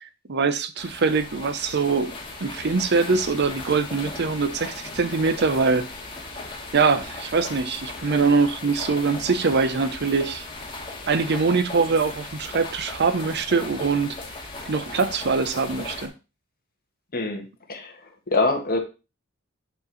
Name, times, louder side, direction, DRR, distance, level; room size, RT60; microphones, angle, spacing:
voice 1, 0.0-2.1 2.4-5.9 6.7-10.4 11.1-14.2 14.7-16.1, right 4 dB, 55° right, 0.7 m, -23 dB
sound 1, 0.8-16.1, left 2 dB, 25° left, 1.8 m, -37 dB
voice 2, 17.1-18.8, left 2 dB, 45° left, 1.5 m, -25 dB
8.0 x 4.6 x 4.0 m
head